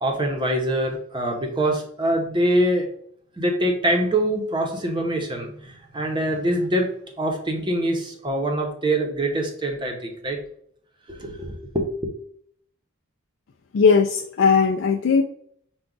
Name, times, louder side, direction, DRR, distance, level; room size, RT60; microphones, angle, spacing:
voice 1, 0.0-2.9 3.4-6.9 7.2-10.4 11.1-12.1, right 1 dB, 20° right, 2 dB, 0.8 m, -24 dB
voice 2, 13.7-15.2, left 5 dB, 65° left, 2 dB, 0.4 m, -18 dB
5.8 x 2.3 x 3.8 m, 0.63 s
head